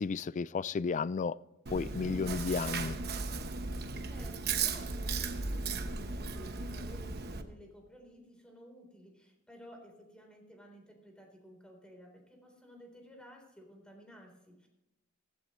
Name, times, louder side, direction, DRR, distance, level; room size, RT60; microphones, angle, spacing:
voice 1, 0.0-1.4 1.7-3.0, left 5 dB, 35° left, 0.3 m, -33 dB
Chewing mastication, 1.7-7.4, right 4 dB, 50° right, 1.0 m, -36 dB
voice 2, 4.1-14.7, equal, 5° left, 3.7 m, -54 dB
15.0 x 14.5 x 3.1 m
head